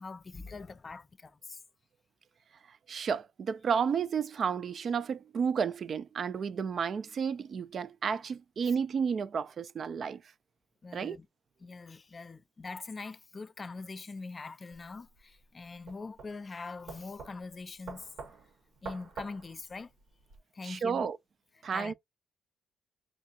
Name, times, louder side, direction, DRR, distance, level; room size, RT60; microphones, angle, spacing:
voice 1, 0.0-1.6 10.8-11.3 11.6-18.1 18.8-19.9 20.5-21.1 21.7-21.9, left 4 dB, 30° left, 0.3 m, -43 dB
voice 2, 2.9-10.2 10.9-11.2 20.6-21.2 21.6-21.9, right 6 dB, 50° right, 0.3 m, -32 dB
sound 1, 14.7-20.4, right 4 dB, 75° right, 1.2 m, -47 dB
4.4 x 2.4 x 2.6 m
cardioid pair, 90°, 0 cm